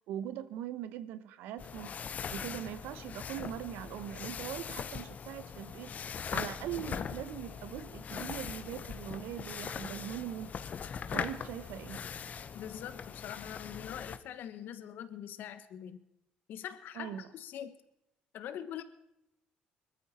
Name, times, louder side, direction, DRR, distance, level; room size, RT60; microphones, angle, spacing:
voice 1, 0.1-1.9 2.3-10.6 11.1-12.0 16.9-17.2, right 11 dB, 85° right, 14 dB, 1.1 m, -41 dB
sound 1, 1.6-14.2, left 7 dB, 50° left, 1.0 m, -41 dB
voice 2, 12.5-16.0 16.5-17.7 18.3-18.8, left 10 dB, 75° left, 12 dB, 1.4 m, -43 dB
20.5 x 14.0 x 4.4 m, 0.83 s
supercardioid pair, 70°, 3 cm